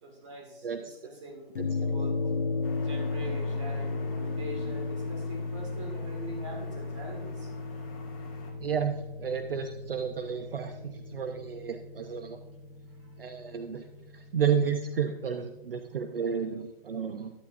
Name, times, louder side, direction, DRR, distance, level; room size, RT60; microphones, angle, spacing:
voice 1, 0.0-1.5 1.9-2.3 2.8-7.5 13.0-13.1, right 1 dB, 30° right, 0 dB, 2.1 m, -43 dB
voice 2, 0.6-0.9 1.6-1.8 8.6-12.4 13.2-13.8 14.1-17.3, right 7 dB, 65° right, 7 dB, 0.7 m, -32 dB
sound 1, 1.6-16.1, left 3 dB, 55° left, 1.0 m, -35 dB
sound 2, 2.6-8.5, left 3 dB, 35° left, 2.0 m, -52 dB
11.5 x 8.5 x 2.6 m, 1.0 s
hypercardioid pair, 170°, 31 cm